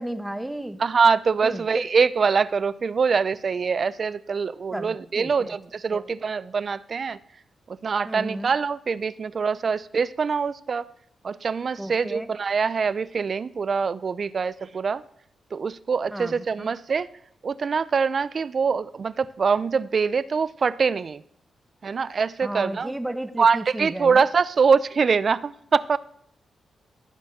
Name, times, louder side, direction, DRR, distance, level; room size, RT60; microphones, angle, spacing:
voice 1, 0.0-0.8 1.4-1.8 4.7-5.6 5.9-6.0 8.0-8.5 11.8-12.3 16.1-16.7 22.4-24.2, right 1 dB, 10° right, 10 dB, 0.9 m, -33 dB
voice 2, 0.8-7.2 7.7-10.9 11.2-15.0 15.5-17.1 17.4-21.2 21.8-22.9 23.4-26.0, right 5 dB, 50° right, 18 dB, 0.4 m, -24 dB
14.0 x 5.2 x 6.5 m, 0.69 s
cardioid pair, 85°, 0 cm